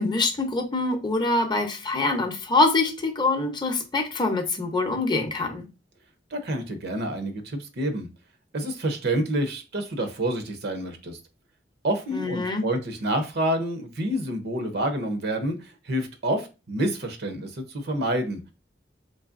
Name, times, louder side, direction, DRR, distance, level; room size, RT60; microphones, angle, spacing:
voice 1, 0.0-5.6 12.1-12.6, left 2 dB, 25° left, 0.6 m, -24 dB
voice 2, 6.3-8.1 8.5-11.2 11.8-18.4, right 1 dB, 60° right, 0.7 m, -28 dB
3.9 x 3.1 x 2.5 m
head